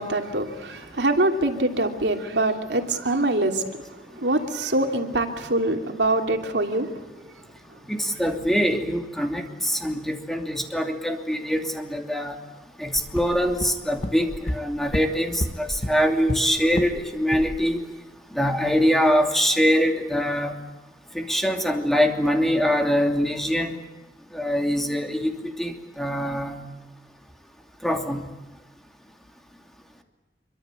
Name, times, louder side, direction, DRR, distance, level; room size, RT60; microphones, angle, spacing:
voice 1, 0.0-7.0, right 2 dB, 80° right, 2.9 m, -24 dB
voice 2, 7.9-12.3 12.8-17.8 18.3-20.5 21.1-23.8 24.3-26.6 27.8-28.2, equal, ahead, 2.8 m, -23 dB
sound 1, 12.9-17.0 17.3-17.6, left 1 dB, 40° left, 1.2 m, -31 dB
26.0 x 24.5 x 8.3 m
head